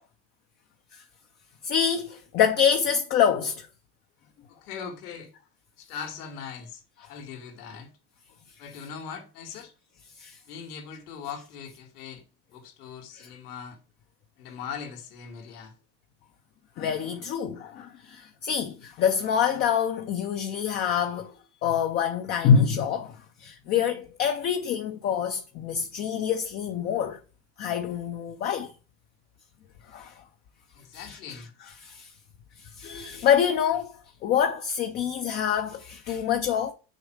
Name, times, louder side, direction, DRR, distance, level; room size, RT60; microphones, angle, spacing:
voice 1, 1.6-3.7 10.2-10.4 13.2-13.3 16.8-21.3 21.6-27.2 27.6-28.7 29.9-30.2 30.9-31.4 31.8-32.1 32.6-36.7, left 8 dB, 25° left, 0.5 m, -26 dB
voice 2, 4.6-5.3 5.8-6.8 7.1-7.9 8.6-9.7 10.5-12.2 12.5-13.8 14.4-15.7 30.8-31.5, left 6 dB, 85° left, 2.8 m, -40 dB
7.9 x 6.4 x 4.9 m
supercardioid pair, 160°, 44 cm